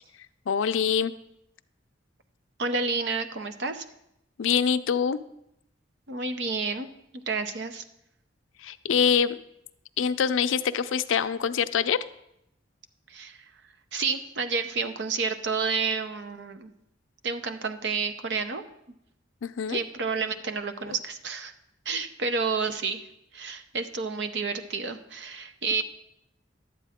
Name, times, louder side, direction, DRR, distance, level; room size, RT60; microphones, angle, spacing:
voice 1, 0.5-1.1 4.4-5.2 8.6-9.4 10.0-12.0 19.4-19.8 20.9-21.0, left 7 dB, 90° left, 12 dB, 0.4 m, -25 dB
voice 2, 2.6-3.8 6.1-6.9 7.1-7.8 13.1-13.4 13.9-16.7 17.2-18.6 19.7-21.5 21.9-23.1 23.3-25.8, right 4 dB, 60° right, 8 dB, 0.7 m, -30 dB
11.5 x 8.4 x 3.6 m, 0.80 s
head